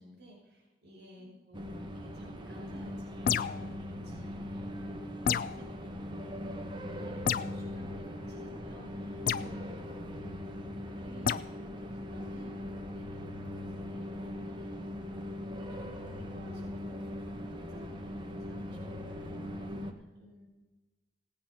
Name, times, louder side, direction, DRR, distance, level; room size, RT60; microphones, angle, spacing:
voice 1, 0.0-10.0 11.0-11.5 12.0-15.0 15.5-20.5, left 1 dB, 65° right, -5 dB, 5.5 m, -54 dB
sound 1, 1.5-19.9, left 1 dB, 25° right, 1.1 m, -40 dB
sound 2, 3.2-3.7 5.2-5.6 7.3-7.6 9.3-9.5 11.2-11.5, left 8 dB, 50° left, 0.4 m, -29 dB
voice 2, 9.6-10.6, right 1 dB, 50° right, -5 dB, 6.1 m, -60 dB
17.0 x 8.9 x 6.3 m, 1.2 s
head